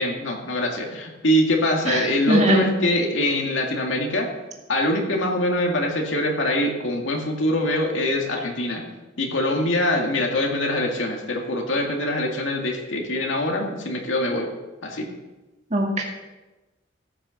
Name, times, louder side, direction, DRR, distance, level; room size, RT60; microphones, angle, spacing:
voice 1, 0.0-4.3 4.7-8.8 9.2-14.5 14.8-15.1, left 1 dB, 80° left, 1 dB, 2.1 m, -24 dB
voice 2, 1.9-2.6 15.7-16.0, right 1 dB, 35° right, 0 dB, 2.2 m, -21 dB
14.5 x 6.7 x 7.0 m, 1.1 s
head